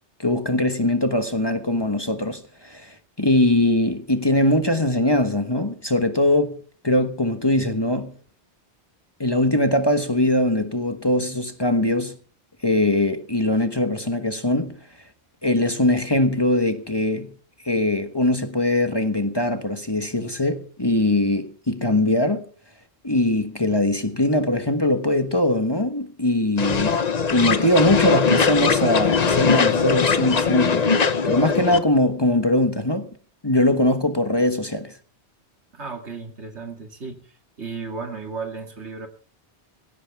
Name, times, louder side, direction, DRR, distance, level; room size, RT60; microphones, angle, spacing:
voice 1, 0.2-6.6 6.8-8.1 9.2-12.1 12.6-14.8 15.4-17.3 17.6-22.4 23.0-27.0 27.3-30.9 31.2-33.1 33.4-34.9, left 1 dB, 20° left, 1.3 m, -21 dB
sound 1, 26.6-31.8, left 5 dB, 40° left, 0.9 m, -20 dB
voice 2, 35.7-37.3 37.6-39.1, right 4 dB, 80° right, 2.7 m, -34 dB
19.0 x 16.5 x 3.5 m
omnidirectional pair, 1.1 m